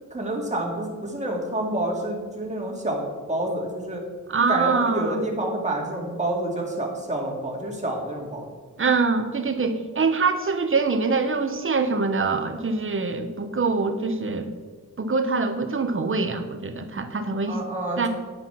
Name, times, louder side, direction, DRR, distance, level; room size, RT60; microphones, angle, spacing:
voice 1, 0.1-3.0 3.3-4.0 4.5-8.5 17.5-18.1, right 1 dB, 20° right, -1 dB, 2.3 m, -28 dB
voice 2, 4.3-5.2 8.8-14.5 15.0-17.6 18.0-18.1, right 4 dB, 40° right, 7 dB, 1.0 m, -24 dB
9.7 x 5.8 x 5.8 m, 1.5 s
wide cardioid pair, 90°, 32 cm